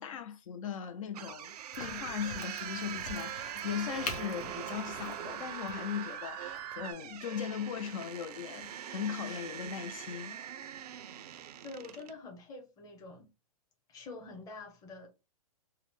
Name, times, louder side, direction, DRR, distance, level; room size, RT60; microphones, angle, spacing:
voice 1, 0.0-10.4, left 8 dB, 60° left, 0.5 m, -38 dB
sound 1, 1.1-12.2, right 10 dB, 85° right, 0.4 m, -44 dB
Crack, 1.7-7.2, left 3 dB, 80° left, 1.1 m, -46 dB
sound 2, 1.7-6.9, right 9 dB, 25° right, 0.5 m, -43 dB
voice 2, 11.6-13.3 13.9-15.1, left 3 dB, 20° left, 0.9 m, -46 dB
3.9 x 2.1 x 3.1 m
hypercardioid pair, 145°, 19 cm